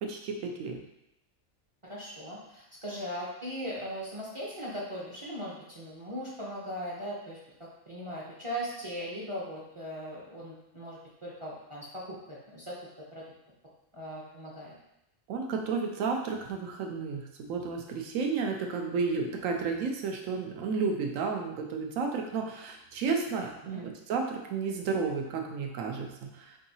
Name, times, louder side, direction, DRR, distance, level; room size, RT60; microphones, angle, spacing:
voice 1, 0.0-0.8 15.3-26.1 26.3-26.5, right 5 dB, 85° right, 2 dB, 1.0 m, -32 dB
voice 2, 1.8-13.2 13.9-14.7 23.4-23.8, equal, 35° right, -6 dB, 0.5 m, -39 dB
4.9 x 2.7 x 2.7 m, 0.85 s
omnidirectional pair, 1.3 m